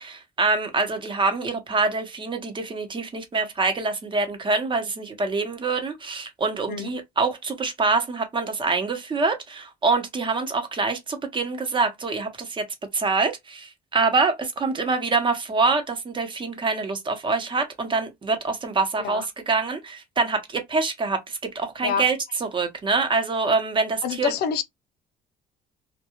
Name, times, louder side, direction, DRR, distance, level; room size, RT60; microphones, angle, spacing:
voice 1, 0.0-12.6 12.9-24.3, right 4 dB, 30° right, 0.8 m, -25 dB
voice 2, 24.0-24.6, left 7 dB, 70° left, 0.5 m, -26 dB
2.3 x 2.2 x 2.9 m
cardioid pair, 110°, 17 cm